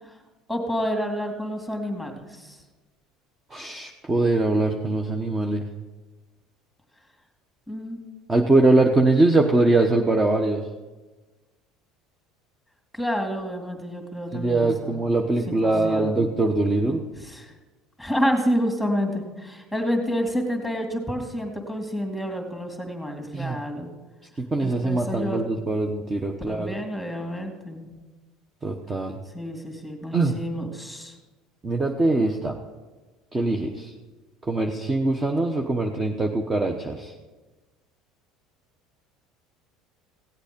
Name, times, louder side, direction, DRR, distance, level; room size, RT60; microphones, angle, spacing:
voice 1, 0.5-2.6 7.7-8.0 12.9-15.0 15.6-16.2 17.3-17.5 18.0-23.9 24.6-25.4 26.5-27.9 29.3-31.2, equal, 5° right, 3 dB, 2.4 m, -29 dB
voice 2, 3.5-5.7 8.3-10.7 14.3-17.0 23.3-23.7 24.4-26.8 28.6-29.2 30.1-30.4 31.6-32.6 33.3-33.9 34.4-37.1, right 2 dB, 20° right, 2 dB, 1.0 m, -22 dB
16.0 x 8.1 x 5.2 m, 1.2 s
supercardioid pair, 105°, 0 cm